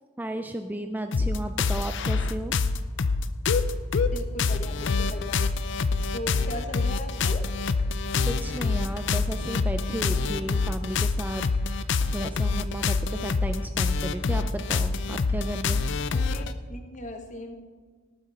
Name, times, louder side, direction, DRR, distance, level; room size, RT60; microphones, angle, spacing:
voice 1, 0.2-2.5 8.3-15.8, right 1 dB, 10° right, 7 dB, 0.4 m, -34 dB
sound 1, 1.1-16.5, left 4 dB, 60° left, 0.5 m, -26 dB
voice 2, 4.0-5.7 6.1-7.5 16.1-17.6, left 1 dB, 40° left, 4 dB, 1.4 m, -38 dB
18.5 x 9.0 x 4.2 m, 1.5 s
head